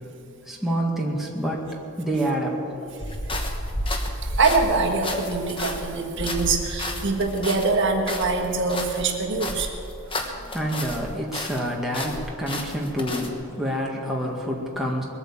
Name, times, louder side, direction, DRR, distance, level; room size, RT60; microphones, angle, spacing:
voice 1, 0.3-3.2 10.1-15.0, equal, ahead, -3 dB, 1.8 m, -28 dB
sound 1, 3.0-11.1 11.3-13.3, left 1 dB, 25° left, 1.3 m, -32 dB
voice 2, 4.2-9.7, right 3 dB, 55° right, 2 dB, 1.4 m, -24 dB
21.0 x 8.8 x 7.4 m, 2.6 s
head